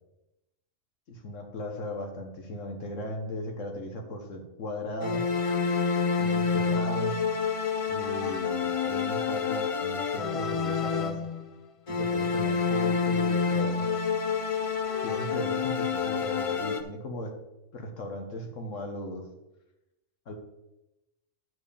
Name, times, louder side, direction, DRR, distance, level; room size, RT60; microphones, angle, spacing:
voice 1, 1.1-5.3 6.2-7.2 7.9-11.3 11.9-13.9 15.0-17.3 17.7-19.3 20.3-20.4, left 1 dB, 70° left, 3 dB, 1.5 m, -37 dB
sound 1, 5.0-11.5 11.9-16.8, left 5 dB, 40° left, 0.4 m, -28 dB
9.3 x 4.5 x 7.0 m, 0.94 s
omnidirectional pair, 1.4 m